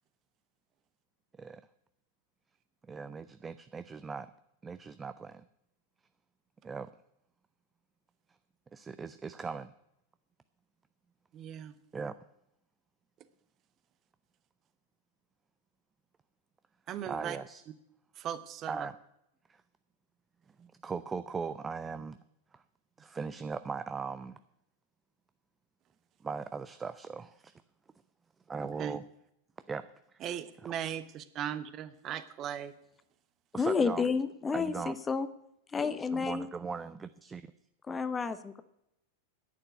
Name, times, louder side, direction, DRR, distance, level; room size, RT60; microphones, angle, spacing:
voice 1, 2.9-4.3 4.6-5.5 6.6-6.9 8.7-9.7 11.9-12.2 17.0-17.6 18.7-19.0 19.5-19.6 20.6-22.2 22.5-22.6 23.0-24.4 26.2-27.5 28.5-29.0 29.7-30.4 30.6-30.7 33.5-34.0 34.5-35.0 36.1-37.5, right 5 dB, 15° right, 13 dB, 0.5 m, -39 dB
voice 2, 11.3-11.7 16.9-17.4 18.2-18.9 28.8-29.0 30.2-32.7, right 10 dB, 35° right, 13 dB, 1.0 m, -38 dB
voice 3, 33.5-35.3 35.7-36.5 37.9-38.6, left 5 dB, 15° left, 14 dB, 0.8 m, -30 dB
11.0 x 9.2 x 8.4 m, 0.79 s
figure-of-eight pair, 90°, 0 cm